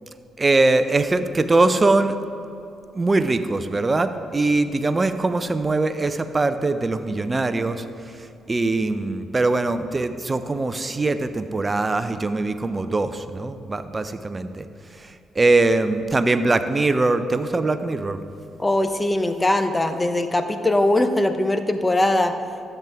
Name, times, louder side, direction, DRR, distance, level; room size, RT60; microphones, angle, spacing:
voice 1, 0.4-2.1 2.9-14.7 14.9-18.2, right 2 dB, 30° right, 10 dB, 0.7 m, -22 dB
voice 2, 18.6-22.3, left 1 dB, 20° left, 8 dB, 0.9 m, -21 dB
13.0 x 9.2 x 3.6 m, 2.7 s
hypercardioid pair, 45°, 0 cm